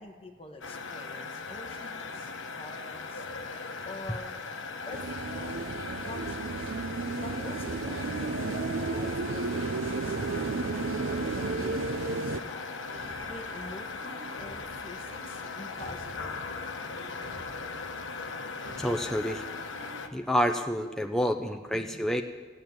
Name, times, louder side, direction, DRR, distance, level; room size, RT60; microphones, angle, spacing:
voice 1, 0.0-3.2 3.8-4.4 4.9-5.0 5.3-5.6 6.0-6.7 7.2-11.0 11.3-12.8 13.3-16.8 21.7-22.0, left 2 dB, 30° left, 4 dB, 1.3 m, -46 dB
sound 1, 0.6-20.1, left 4 dB, 70° left, 1.1 m, -39 dB
sound 2, 4.9-12.4, right 3 dB, 80° right, 0.5 m, -33 dB
sound 3, 8.6-20.1, equal, 65° right, 6.5 m, -49 dB
voice 2, 18.8-19.4 20.1-22.2, equal, ahead, 4 dB, 0.6 m, -28 dB
15.5 x 8.9 x 9.4 m, 1.3 s
head